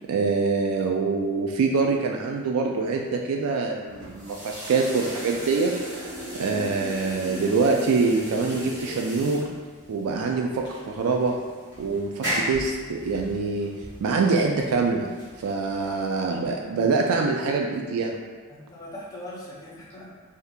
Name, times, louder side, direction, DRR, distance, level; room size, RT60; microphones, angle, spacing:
voice 1, 0.1-4.4 4.7-5.7 6.4-9.5 9.9-11.3 11.8-13.7 14.0-15.1 15.4-18.2, right 4 dB, 80° right, 1 dB, 0.3 m, -24 dB
sound 1, 3.9-16.3, right 1 dB, 50° right, 1.2 m, -36 dB
voice 2, 15.7-16.4 18.5-20.2, left 1 dB, 15° left, -7 dB, 0.5 m, -42 dB
2.7 x 2.4 x 3.5 m, 1.4 s
head